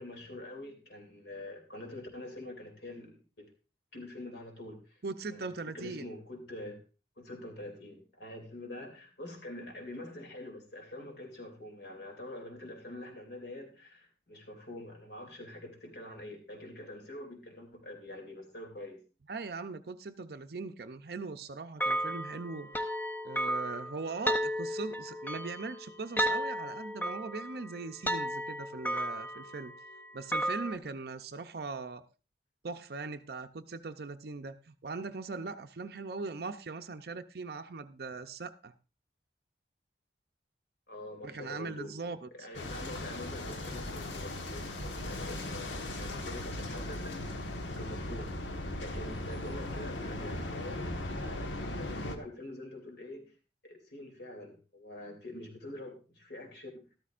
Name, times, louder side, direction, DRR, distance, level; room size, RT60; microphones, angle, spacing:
voice 1, 0.0-3.5 3.9-5.0 5.3-5.5 5.7-6.8 7.2-19.0 40.9-42.0 42.3-48.3 48.8-53.3 53.6-56.8, left 1 dB, 60° left, 2.8 m, -45 dB
voice 2, 5.0-6.1 19.3-22.9 23.2-29.7 30.1-32.0 32.6-38.7 41.2-42.3, right 4 dB, 55° right, 0.6 m, -40 dB
sound 1, 21.8-30.8, equal, 10° left, 0.5 m, -34 dB
sound 2, 42.5-52.2, left 1 dB, 85° left, 1.3 m, -38 dB
13.0 x 12.5 x 2.5 m
head